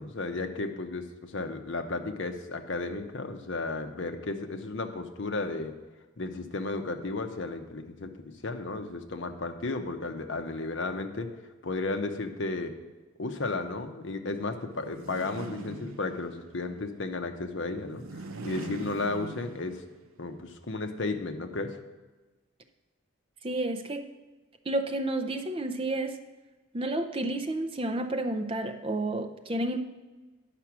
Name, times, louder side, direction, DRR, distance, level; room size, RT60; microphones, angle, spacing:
voice 1, 0.0-5.7 6.2-11.3 11.6-12.8 13.2-19.8 20.2-21.8, left 3 dB, 60° left, 7 dB, 0.8 m, -34 dB
sound 1, 14.7-16.5 17.8-20.0, right 3 dB, 90° right, 0.7 m, -41 dB
voice 2, 23.4-24.1 24.7-26.2 26.7-29.8, right 2 dB, 25° right, 6 dB, 0.5 m, -30 dB
9.9 x 5.9 x 6.0 m, 1.2 s
head